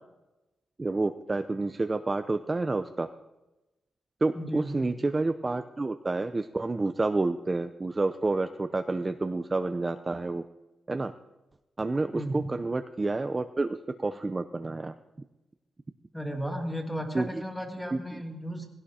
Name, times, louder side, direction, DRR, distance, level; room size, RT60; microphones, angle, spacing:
voice 1, 0.8-3.1 4.2-10.4 10.9-11.1 11.8-14.9 17.1-17.4 17.9-18.2, right 3 dB, 20° right, 9 dB, 0.6 m, -29 dB
voice 2, 4.3-5.0 12.1-12.6 16.1-18.7, equal, ahead, 3 dB, 2.3 m, -34 dB
20.0 x 17.0 x 4.3 m, 1.0 s
wide cardioid pair, 150°, 0 cm